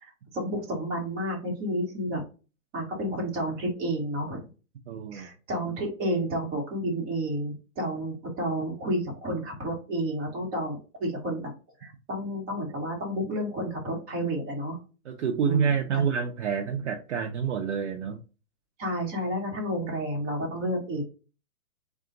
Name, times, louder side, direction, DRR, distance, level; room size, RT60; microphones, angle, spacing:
voice 1, 0.0-2.2 2.7-4.5 5.1-11.5 11.8-14.8 15.4-16.0 18.8-21.0, right 1 dB, 20° right, -1 dB, 1.2 m, -31 dB
voice 2, 4.9-5.3 15.1-18.2, right 6 dB, 55° right, 3 dB, 0.6 m, -28 dB
3.8 x 2.4 x 3.7 m, 0.33 s
hypercardioid pair, 150°, 43 cm